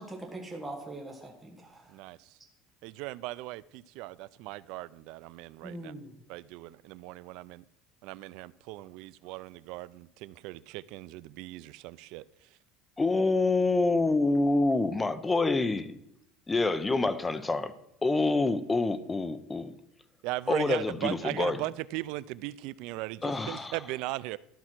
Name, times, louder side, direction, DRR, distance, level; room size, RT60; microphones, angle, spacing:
voice 1, 0.0-2.0 5.6-6.1, right 2 dB, 5° right, 1.3 m, -42 dB
voice 2, 1.9-2.3 2.8-5.9 6.3-7.6 8.0-12.2 20.2-24.4, right 18 dB, 65° right, 0.3 m, -38 dB
voice 3, 13.0-16.0 16.5-17.7 18.0-19.8 20.5-21.6 23.2-23.7, left 3 dB, 10° left, 0.6 m, -27 dB
12.5 x 5.6 x 6.0 m
cardioid pair, 155°, 0 cm